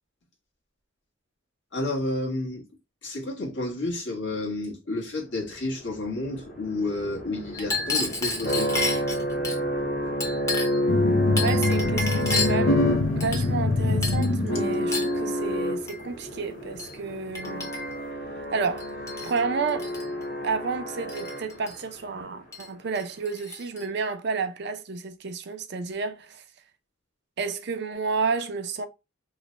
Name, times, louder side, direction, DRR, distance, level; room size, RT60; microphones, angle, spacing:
voice 1, 1.7-2.6 3.0-8.7, left 2 dB, 70° left, 1.4 m, -30 dB
sound 1, 5.6-21.9, equal, 50° left, 1.1 m, -30 dB
Chink clink, 7.5-9.6 10.2-10.9 11.4-12.7 13.2-13.7 14.0-14.3 14.9-15.2 15.9-16.0 16.8-16.9 17.3-18.1 18.8-19.4 19.7-20.1 21.1-21.8 22.5-22.7 23.0-23.8, left 3 dB, 15° left, 0.7 m, -31 dB
sound 2, 10.9-15.1, left 2 dB, 90° left, 0.6 m, -24 dB
voice 2, 11.4-12.8 13.2-17.7 18.5-18.9 19.2-19.9 20.4-26.4 27.4-28.9, right 5 dB, 60° right, 0.5 m, -31 dB
3.1 x 2.2 x 3.9 m
head